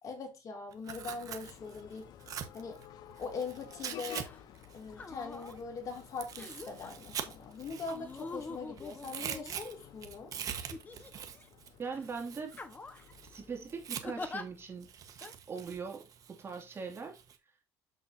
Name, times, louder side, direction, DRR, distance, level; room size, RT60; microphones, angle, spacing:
voice 1, 0.0-2.1 2.5-2.8 3.2-4.3 4.7-10.3, left 4 dB, 45° left, 2.6 m, -42 dB
Tearing, 0.7-4.2 4.5-8.5 8.8-14.3 14.8-17.4, right 8 dB, 50° right, 1.3 m, -44 dB
sound 1, 0.9-15.1, left 10 dB, 60° left, 0.8 m, -54 dB
sound 2, 4.2-4.4 4.9-5.6 6.4-6.9 7.9-9.9 10.7-11.5 11.9-12.1 12.5-13.1 14.0-14.4 15.2-15.3, left 3 dB, 20° left, 1.3 m, -44 dB
voice 2, 11.8-12.6 13.3-14.9 15.5-17.2, right 5 dB, 30° right, 2.4 m, -41 dB
7.4 x 7.2 x 2.7 m
cardioid pair, 115°, 8 cm